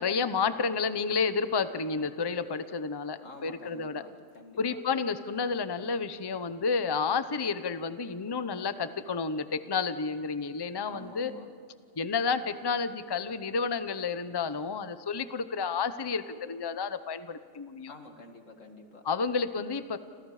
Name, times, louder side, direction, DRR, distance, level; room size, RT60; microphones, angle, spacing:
voice 1, 0.0-4.0 4.6-11.3 12.0-17.9 19.0-20.0, left 5 dB, 25° left, 11 dB, 0.7 m, -31 dB
voice 2, 3.2-4.8 10.8-11.5 14.5-14.6 17.9-19.1, left 2 dB, 85° left, 4 dB, 2.5 m, -49 dB
30.0 x 27.0 x 4.9 m, 2.1 s
omnidirectional pair, 1.3 m